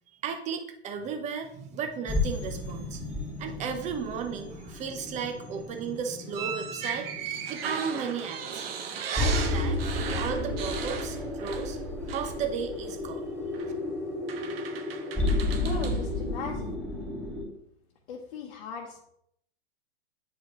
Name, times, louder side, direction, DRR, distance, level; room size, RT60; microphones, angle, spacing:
voice 1, 0.2-8.6 9.1-13.3, right 6 dB, 20° right, 6 dB, 0.8 m, -35 dB
sound 1, 2.1-17.4, left 2 dB, 5° left, 2.7 m, -33 dB
sound 2, 6.3-11.8 12.1-12.3 13.5-13.7 14.3-16.0, right 7 dB, 60° right, 1.1 m, -36 dB
voice 2, 15.6-16.7 18.1-19.0, left 5 dB, 55° left, -1 dB, 1.1 m, -38 dB
9.1 x 4.9 x 3.0 m, 0.73 s
hypercardioid pair, 130°, 33 cm